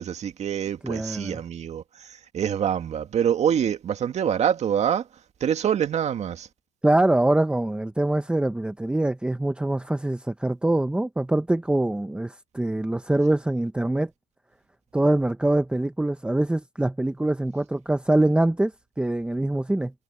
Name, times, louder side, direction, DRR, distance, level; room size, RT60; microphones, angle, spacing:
voice 1, 0.0-5.0 5.4-6.5, right 9 dB, 40° right, 2.0 m, -25 dB
voice 2, 0.8-1.4 6.8-14.1 14.9-19.9, right 1 dB, 5° right, 1.1 m, -24 dB
supercardioid pair, 100°, 17 cm